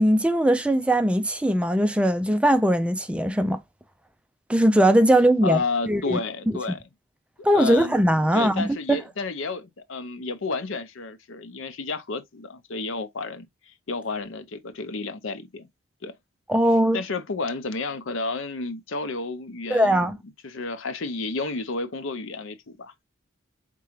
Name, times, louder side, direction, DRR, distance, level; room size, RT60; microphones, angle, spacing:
voice 1, 0.0-3.6 4.5-5.6 5.9-6.2 7.4-9.0 16.5-17.0 19.7-20.2, right 1 dB, 5° right, 0.3 m, -20 dB
voice 2, 5.4-6.8 7.5-7.9 8.3-15.7 16.0-16.1 16.9-20.1 20.4-22.9, left 3 dB, 75° left, 0.7 m, -31 dB
4.6 x 3.8 x 3.0 m
head